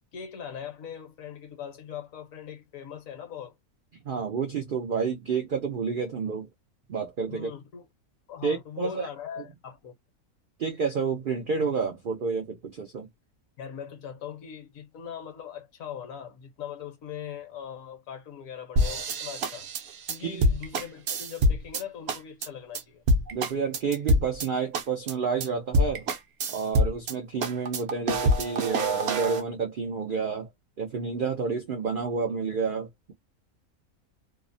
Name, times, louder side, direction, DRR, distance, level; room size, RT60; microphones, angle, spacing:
voice 1, 0.1-3.5 7.3-7.9 8.3-9.9 13.6-19.7 20.1-23.0, left 8 dB, 65° left, 1.2 m, -40 dB
voice 2, 4.1-6.5 6.9-7.5 8.4-9.1 10.6-13.1 20.2-20.4 23.3-26.1 26.5-30.5 30.8-33.1, right 5 dB, 85° right, 0.4 m, -30 dB
sound 1, 18.8-21.8 22.1-22.5 22.7-22.8 23.1-24.5 24.7-25.1 25.4-25.5 25.7-27.1 27.4-29.4, equal, 60° right, 0.7 m, -25 dB
2.8 x 2.0 x 2.5 m
omnidirectional pair, 1.6 m